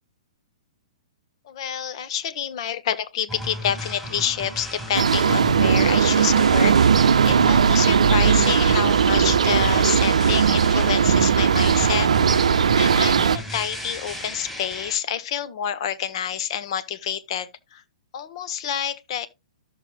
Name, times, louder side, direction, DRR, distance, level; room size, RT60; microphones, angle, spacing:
voice 1, 1.4-6.8 7.3-12.1 12.8-17.8 18.1-19.3, left 9 dB, 55° left, 1.1 m, -28 dB
sound 1, 3.3-14.9, equal, 5° left, 5.4 m, -35 dB
sound 2, 4.9-13.4, right 7 dB, 75° right, 0.6 m, -18 dB
13.0 x 6.6 x 2.3 m
hypercardioid pair, 125°, 4 cm